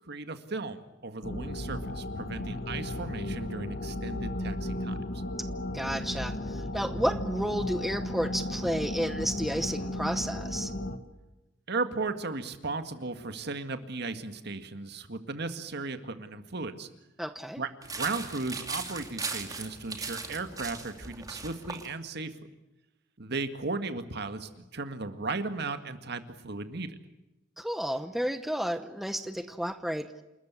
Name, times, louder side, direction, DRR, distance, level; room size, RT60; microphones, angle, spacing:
voice 1, 0.1-5.0 11.7-16.9 17.6-22.3 23.2-27.0, right 3 dB, 60° right, 9 dB, 1.9 m, -36 dB
sound 1, 1.2-11.0, left 1 dB, 55° left, 1.7 m, -35 dB
voice 2, 5.7-10.7 17.2-17.6 27.6-30.1, equal, ahead, 9 dB, 0.9 m, -31 dB
sound 2, 17.8-21.9, right 4 dB, 20° right, 2.5 m, -38 dB
28.5 x 13.5 x 9.7 m, 1.0 s
head